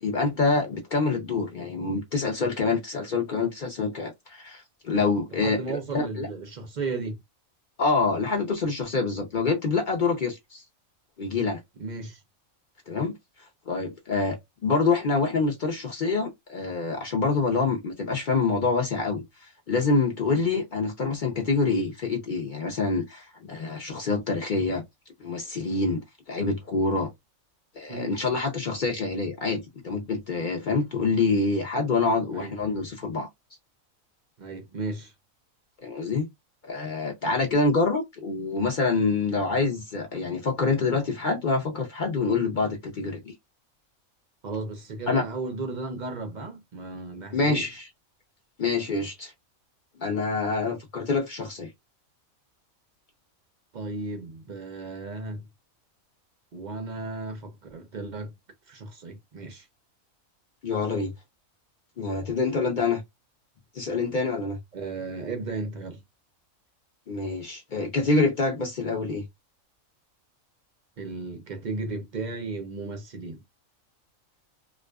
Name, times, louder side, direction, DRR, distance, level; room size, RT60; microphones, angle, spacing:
voice 1, 0.0-6.3 7.8-10.6 11.2-11.6 12.9-13.1 13.7-24.8 25.2-27.1 27.7-33.3 35.8-36.3 36.6-43.3 45.1-45.3 47.3-47.9 48.6-49.3 50.0-51.7 60.6-61.1 62.0-63.0 63.7-64.6 67.1-69.2, left 4 dB, 55° left, 0.5 m, -26 dB
voice 2, 5.4-7.2 11.8-12.2 27.9-28.2 32.3-32.6 34.4-35.1 44.4-47.7 53.7-55.5 56.5-58.3 58.7-59.7 64.7-66.0 71.0-73.4, right 3 dB, 55° right, 0.5 m, -35 dB
2.4 x 2.3 x 2.2 m
omnidirectional pair, 1.4 m